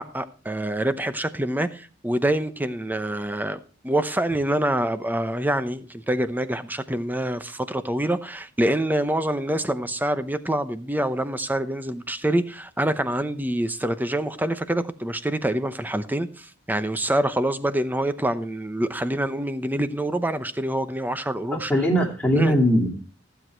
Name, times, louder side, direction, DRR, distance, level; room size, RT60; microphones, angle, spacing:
voice 1, 0.0-3.6 3.8-21.7 22.4-22.5, right 1 dB, 10° right, 0.8 m, -26 dB
voice 2, 21.5-23.0, equal, 5° left, 2.3 m, -20 dB
15.0 x 8.1 x 4.5 m
head